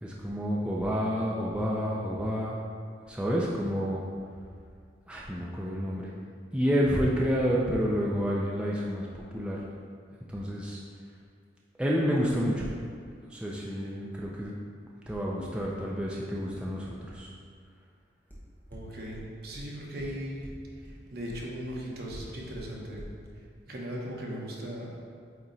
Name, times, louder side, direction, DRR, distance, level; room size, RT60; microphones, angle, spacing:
voice 1, 0.0-2.6 3.1-4.0 5.1-6.1 6.5-9.6 10.3-10.8 11.8-12.7 13.3-14.5 15.1-17.3, equal, 5° right, -4 dB, 0.4 m, -29 dB
sound 1, 18.3-18.4 18.7-18.8 19.1-19.2 19.5-19.6 20.0-20.1 20.4-20.5 20.8-20.9 21.3-21.4 21.7-21.8 22.1-22.2 22.5-22.6 23.0-23.1, equal, 10° left, 1.0 m, -45 dB
voice 2, 18.7-20.5 20.8-23.0 23.6-25.0, equal, 60° right, -3 dB, 1.1 m, -38 dB
8.5 x 3.0 x 4.0 m, 2.2 s
head